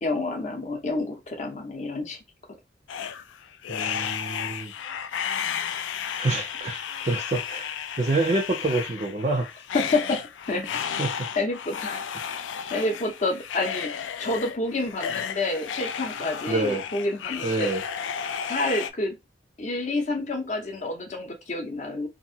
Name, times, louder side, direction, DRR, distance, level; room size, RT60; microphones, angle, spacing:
voice 1, 0.0-2.2 9.7-10.2 10.5-10.7 11.4-12.0 12.7-17.7 18.5-19.2 19.6-22.1, left 2 dB, 40° left, 0.7 m, -28 dB
sound 1, 2.9-18.9, left 8 dB, 85° left, 0.3 m, -33 dB
voice 2, 3.7-4.7 6.2-9.5 11.0-11.1 16.5-16.8 17.4-17.8, right 2 dB, 35° right, 0.4 m, -27 dB
2.9 x 2.5 x 2.7 m
head